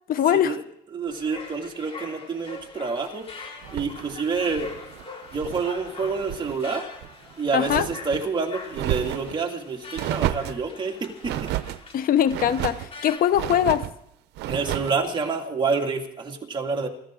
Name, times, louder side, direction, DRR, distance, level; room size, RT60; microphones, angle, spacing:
voice 1, 0.1-0.6 7.5-7.9 11.9-13.9, left 10 dB, 60° left, 0.8 m, -22 dB
voice 2, 0.9-3.2 3.7-4.7 5.3-6.8 7.4-11.5 14.5-16.9, right 4 dB, 25° right, 2.4 m, -28 dB
sound 1, 1.1-13.2, left 3 dB, 35° left, 4.5 m, -43 dB
sound 2, 3.6-5.7 6.0-6.6 6.9-8.3 8.7-9.4 9.9-10.6 11.2-11.8 12.3-12.9 13.3-13.9 14.3-15.0, right 14 dB, 80° right, 0.7 m, -31 dB
27.0 x 14.0 x 3.8 m
cardioid pair, 110°, 17 cm